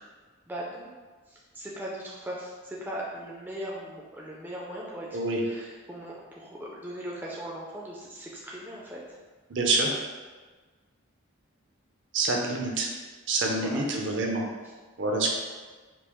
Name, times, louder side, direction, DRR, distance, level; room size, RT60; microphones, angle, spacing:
voice 1, 0.5-0.9 1.3-5.1 5.4-9.0 13.6-13.8, right 1 dB, 10° right, -4 dB, 0.4 m, -39 dB
voice 2, 9.5-9.9 12.1-12.9 13.3-14.4 15.0-15.3, right 2 dB, 60° right, 0 dB, 0.6 m, -26 dB
5.1 x 2.0 x 3.0 m, 1.4 s
head